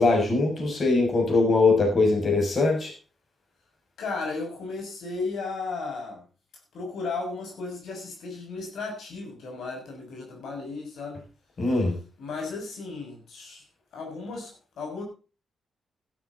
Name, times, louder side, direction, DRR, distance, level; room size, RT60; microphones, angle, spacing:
voice 1, 0.0-2.9 11.6-12.0, left 3 dB, 45° left, 2 dB, 6.4 m, -22 dB
voice 2, 4.0-6.2 6.7-11.3 12.2-13.6 13.9-15.0, left 3 dB, 75° left, 1 dB, 6.2 m, -35 dB
13.5 x 12.5 x 4.0 m, 0.35 s
cardioid pair, 85°, 0 cm